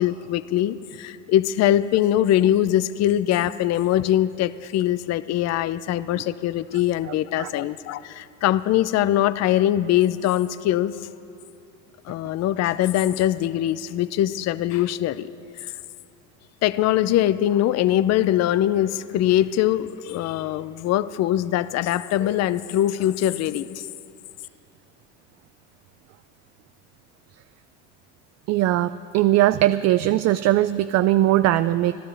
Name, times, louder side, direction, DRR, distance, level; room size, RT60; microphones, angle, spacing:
voice 1, 0.0-11.1 12.0-15.3 15.6-15.7 16.6-23.9, left 12 dB, 45° left, 15 dB, 0.6 m, -22 dB
voice 2, 28.5-31.9, right 14 dB, 45° right, 14 dB, 0.5 m, -20 dB
25.0 x 13.5 x 3.4 m, 2.6 s
supercardioid pair, 85°, 36 cm